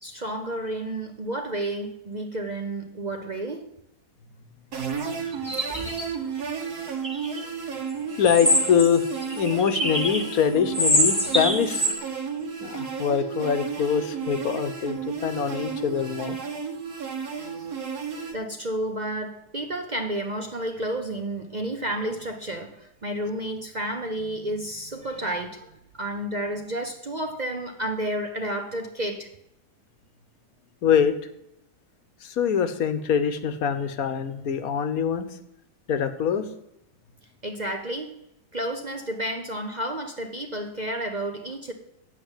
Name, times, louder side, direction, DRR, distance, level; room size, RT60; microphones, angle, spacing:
voice 1, 0.0-3.7 18.3-29.3 37.4-38.1 38.5-41.7, right 1 dB, 35° right, 5 dB, 0.8 m, -31 dB
sound 1, 4.7-18.3, right 6 dB, 75° right, 1.9 m, -33 dB
sound 2, 5.3-6.0 7.0-7.4 8.2-10.3 10.7-11.9, equal, 5° right, 1.6 m, -24 dB
voice 2, 8.2-9.0 9.3-11.9 12.6-16.4 30.8-31.2 32.2-35.3 35.9-36.5, left 7 dB, 65° left, 10 dB, 1.3 m, -24 dB
8.5 x 7.5 x 8.8 m, 0.81 s
omnidirectional pair, 1.7 m